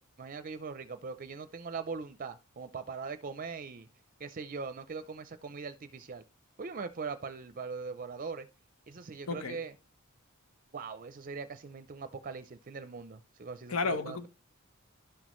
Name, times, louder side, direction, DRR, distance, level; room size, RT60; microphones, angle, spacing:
voice 1, 0.2-3.9 4.2-6.2 6.6-8.5 8.9-9.7 10.7-14.3, right 5 dB, 40° right, 0.5 m, -41 dB
voice 2, 9.3-9.6 13.7-14.3, left 4 dB, 80° left, 0.9 m, -32 dB
11.0 x 6.2 x 3.0 m
head